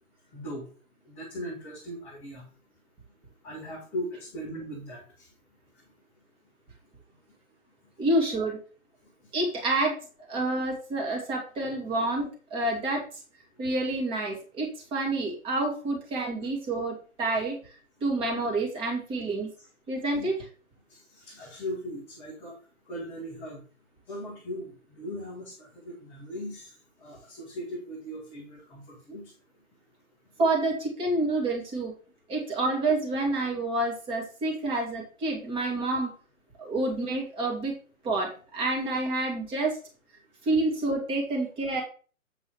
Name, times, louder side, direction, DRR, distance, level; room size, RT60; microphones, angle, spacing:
voice 1, 0.3-0.7 1.1-2.4 3.4-5.0 20.1-20.3 20.9-22.5 22.9-23.6 24.1-26.7 27.0-29.3, equal, 5° left, -4 dB, 0.7 m, -38 dB
voice 2, 8.0-8.6 9.3-10.0 10.3-13.0 13.6-17.6 18.0-19.5 19.9-20.4 30.4-31.9 32.3-36.1 36.6-37.7 38.0-39.8 40.4-41.8, right 2 dB, 10° right, 0 dB, 2.3 m, -28 dB
8.1 x 5.4 x 4.9 m, 0.38 s
figure-of-eight pair, 140°, 42 cm